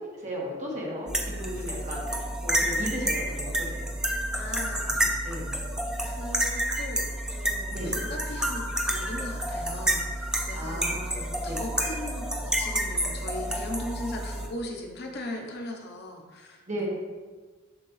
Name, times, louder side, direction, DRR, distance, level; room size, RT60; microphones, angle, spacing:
voice 1, 0.2-3.9 4.9-5.6 7.7-8.0 10.5-11.6 16.7-16.9, equal, 40° right, -4 dB, 1.7 m, -36 dB
sound 1, 1.1-14.5, right 1 dB, 5° right, 0.6 m, -29 dB
voice 2, 4.3-5.3 6.0-16.9, left 1 dB, 55° left, 1 dB, 0.9 m, -39 dB
7.3 x 5.8 x 3.2 m, 1.4 s
head